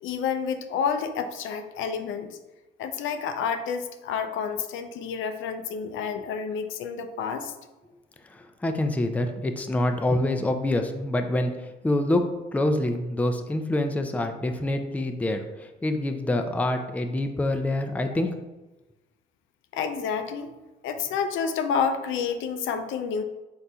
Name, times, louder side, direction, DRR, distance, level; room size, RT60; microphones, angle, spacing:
voice 1, 0.0-2.4 2.8-7.5 19.7-20.5 20.8-23.2, left 6 dB, 80° left, 8 dB, 0.4 m, -29 dB
voice 2, 8.3-12.3 12.5-18.3, left 1 dB, 5° left, 6 dB, 0.4 m, -26 dB
4.1 x 3.8 x 2.3 m, 1.1 s
cardioid pair, 90°, 20 cm